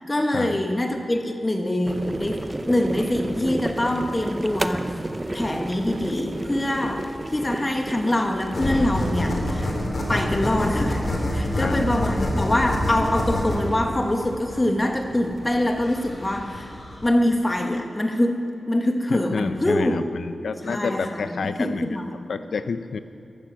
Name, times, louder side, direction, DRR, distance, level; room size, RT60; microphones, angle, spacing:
voice 1, 0.0-5.0 5.3-9.7 10.1-16.7 17.0-20.0 20.6-22.2, left 1 dB, 20° left, 4 dB, 1.4 m, -24 dB
sound 1, 1.9-16.3, right 1 dB, 20° right, 0.6 m, -34 dB
sound 2, 8.5-17.1, left 1 dB, 45° left, 3.3 m, -27 dB
voice 2, 19.1-21.9 22.3-23.0, left 5 dB, 75° left, 10 dB, 0.6 m, -29 dB
13.5 x 13.5 x 6.2 m, 2.6 s
wide cardioid pair, 90°, 0 cm